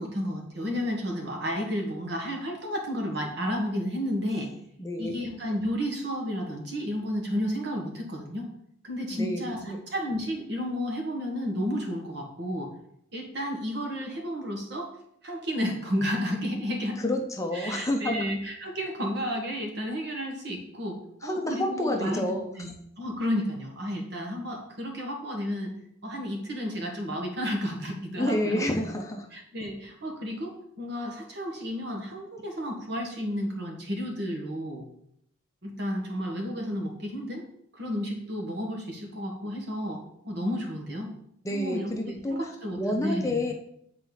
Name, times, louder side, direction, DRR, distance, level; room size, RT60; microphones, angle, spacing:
voice 1, 0.0-4.5 5.0-8.5 8.8-9.6 9.9-12.7 13.1-14.9 15.2-17.0 17.5-22.7 23.0-25.8 26.0-28.6 29.3-34.8 35.6-37.4 37.7-41.1 41.5-43.4, equal, 60° right, 2 dB, 1.6 m, -32 dB
voice 2, 4.8-5.2 9.1-9.8 17.0-18.3 21.2-22.5 28.2-29.3 41.4-42.5 42.8-43.5, left 1 dB, 15° left, 3 dB, 0.6 m, -29 dB
8.5 x 4.1 x 4.0 m, 0.72 s
head